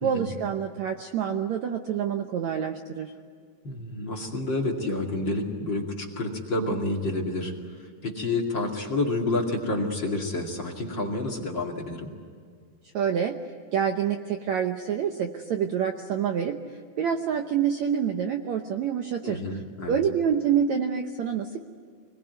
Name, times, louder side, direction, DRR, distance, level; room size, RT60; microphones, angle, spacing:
voice 1, 0.0-3.1 12.9-13.3 13.7-16.6 17.0-19.4 19.9-21.6, right 8 dB, 70° right, 5 dB, 1.8 m, -27 dB
voice 2, 3.6-7.5 8.0-12.1 19.2-20.0, left 2 dB, 35° left, 0 dB, 2.6 m, -29 dB
26.5 x 20.0 x 9.4 m, 2.1 s
omnidirectional pair, 4.3 m